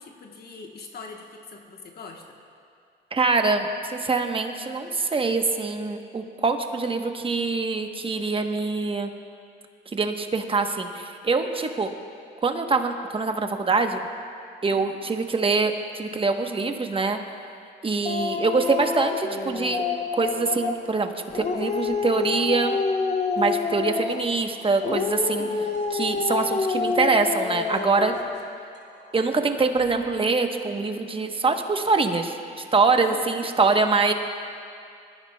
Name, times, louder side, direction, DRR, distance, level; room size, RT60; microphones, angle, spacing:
voice 1, 0.0-2.4 14.7-15.0 25.3-25.7 33.0-33.5, left 4 dB, 55° left, 2 dB, 1.1 m, -43 dB
voice 2, 3.1-3.7 3.9-9.1 9.9-11.9 12.4-14.0 14.6-17.2 17.8-19.8 20.2-22.8 23.4-25.5 25.9-28.1 29.1-32.4 32.7-34.1, right 4 dB, 25° right, 5 dB, 0.9 m, -24 dB
Dog, 18.1-20.9 21.3-24.4 24.8-28.4, left 4 dB, 35° left, 0.8 m, -27 dB
sound 1, 23.7-31.5, right 6 dB, 70° right, 3.0 m, -48 dB
20.5 x 14.0 x 2.2 m, 2.4 s
cardioid pair, 90°, 20 cm